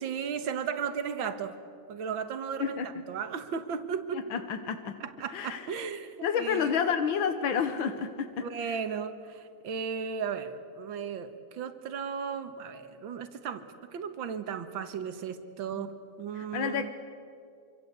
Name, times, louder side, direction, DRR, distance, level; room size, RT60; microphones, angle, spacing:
voice 1, 0.0-1.6 1.9-4.2 5.0-6.7 8.4-13.6 13.9-15.9 16.2-16.9, right 7 dB, 80° right, 9 dB, 2.1 m, -35 dB
voice 2, 4.1-4.9 5.3-5.7 6.2-8.8 15.7-15.9 16.3-16.9, left 7 dB, 80° left, 8 dB, 1.9 m, -30 dB
26.0 x 25.5 x 8.1 m, 2.3 s
omnidirectional pair, 2.1 m